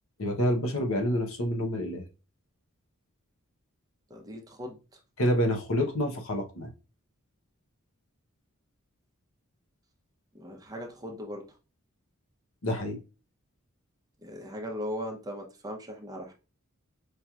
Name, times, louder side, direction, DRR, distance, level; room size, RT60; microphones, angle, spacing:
voice 1, 0.2-2.0 5.2-6.7 12.6-13.0, equal, 65° left, 3 dB, 0.9 m, -28 dB
voice 2, 4.1-5.0 10.3-11.6 14.2-16.3, equal, 15° right, 2 dB, 0.6 m, -39 dB
5.0 x 2.9 x 2.4 m, 0.32 s
head